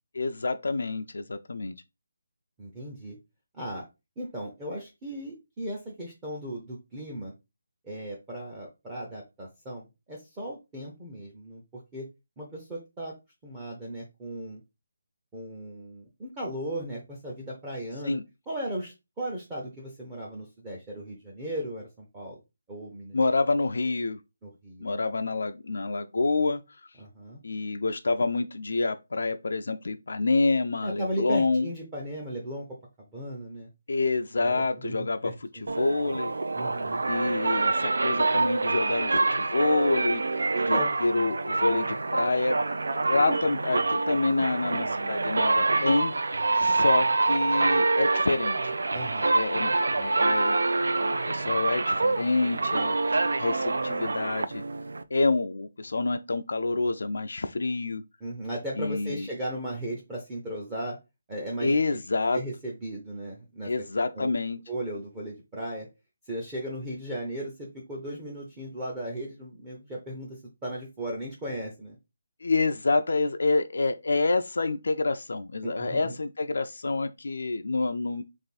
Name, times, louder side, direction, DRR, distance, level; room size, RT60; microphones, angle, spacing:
voice 1, 0.1-1.7 18.1-18.2 23.1-24.2 24.8-26.6 27.4-31.7 33.9-36.3 37.1-40.4 40.7-42.6 43.1-46.1 46.5-48.7 49.3-49.7 50.0-54.6 55.1-58.0 58.8-59.2 61.6-62.4 63.7-64.6 72.4-78.2, left 3 dB, 65° left, 0.4 m, -27 dB
voice 2, 2.6-3.2 3.5-3.8 4.2-7.3 7.8-12.1 12.4-13.1 13.4-14.6 15.3-18.2 18.5-22.4 22.7-23.2 24.4-25.0 27.0-27.4 30.8-32.8 33.1-33.7 34.4-35.7 36.5-37.0 40.5-40.9 43.2-43.4 48.9-49.3 58.2-61.0 61.3-61.8 62.3-63.7 64.1-64.3 64.7-65.9 66.3-72.0 75.6-76.1, right 1 dB, 10° right, 0.6 m, -36 dB
sound 1, 35.7-55.0, right 3 dB, 75° right, 0.4 m, -26 dB
3.5 x 2.5 x 4.0 m
hypercardioid pair, 175°, 0 cm